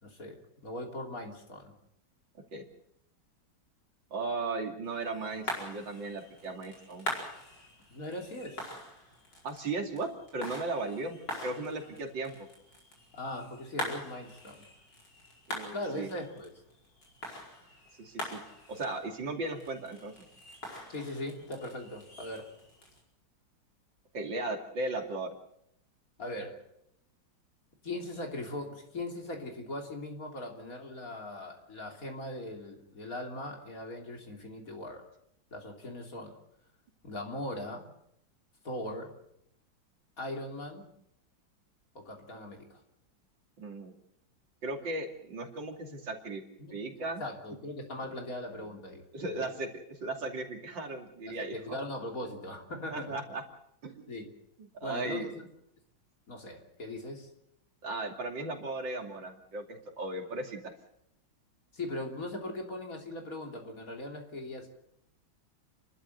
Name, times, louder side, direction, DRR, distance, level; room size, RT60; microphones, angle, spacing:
voice 1, 0.0-1.7 7.9-8.6 13.1-14.6 15.7-16.5 20.9-22.5 26.2-26.7 27.8-35.1 35.5-36.4 37.0-37.9 38.6-39.2 40.2-40.8 42.0-42.8 46.6-46.8 47.2-49.0 49.4-49.5 51.2-53.2 54.1-54.3 54.8-55.3 56.3-57.3 61.7-64.7, left 1 dB, 40° left, 2 dB, 3.5 m, -40 dB
voice 2, 4.1-7.1 9.4-12.5 15.5-16.1 18.0-18.4 18.7-20.1 24.1-25.3 43.6-43.9 44.6-46.4 46.7-47.2 49.1-51.6 52.9-53.4 53.8-54.0 54.6-55.4 57.8-60.7, right 2 dB, 65° right, 3 dB, 3.4 m, -36 dB
sound 1, 4.8-23.0, left 1 dB, 60° left, 5.6 m, -44 dB
30.0 x 12.5 x 8.1 m, 0.76 s
omnidirectional pair, 2.2 m